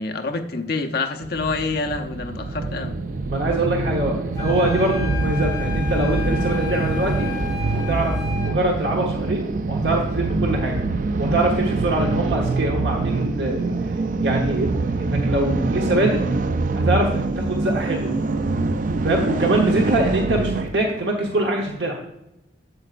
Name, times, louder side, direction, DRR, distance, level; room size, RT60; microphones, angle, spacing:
voice 1, 0.0-2.9 19.0-19.1, left 3 dB, 55° left, 5 dB, 0.7 m, -27 dB
sound 1, 1.2-20.7, right 3 dB, 45° right, 0.4 m, -25 dB
voice 2, 3.3-7.3 7.9-10.8 11.2-13.9 14.2-16.2 16.7-18.2 19.0-22.0, right 1 dB, 70° right, 0 dB, 1.0 m, -23 dB
sound 2, 4.3-8.6, left 8 dB, 20° left, 1.8 m, -33 dB
7.8 x 7.8 x 2.5 m, 0.88 s
head